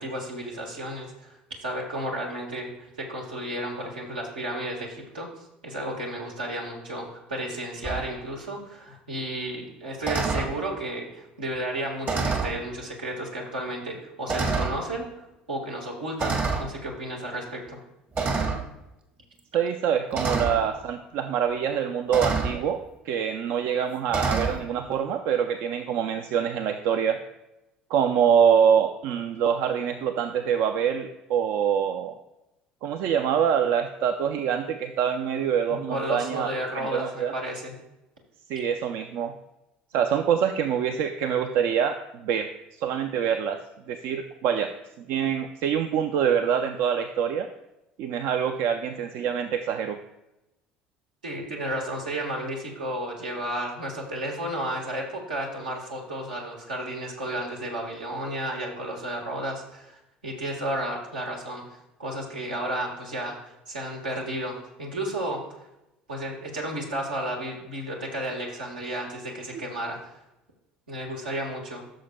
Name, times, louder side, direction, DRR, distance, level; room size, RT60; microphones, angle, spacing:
voice 1, 0.0-17.8 35.7-37.7 51.2-63.4 63.7-65.4 66.1-70.2 70.9-71.8, right 1 dB, 80° right, -1 dB, 1.4 m, -33 dB
sound 1, 7.8-8.0 10.0-10.5 12.0-12.6 13.4-13.5 14.3-14.8 16.2-16.7 18.1-18.6 20.1-20.6 22.1-22.6 24.1-24.6, right 4 dB, 40° right, 1.2 m, -26 dB
voice 2, 19.5-27.2 27.9-32.2 32.8-36.5 36.7-37.3 38.5-39.3 39.9-42.0 42.2-42.5 42.8-43.6 43.9-44.7 45.0-47.5 48.0-50.0, right 8 dB, 55° right, 7 dB, 0.4 m, -25 dB
13.0 x 6.4 x 2.2 m, 0.92 s
figure-of-eight pair, 60°, 5 cm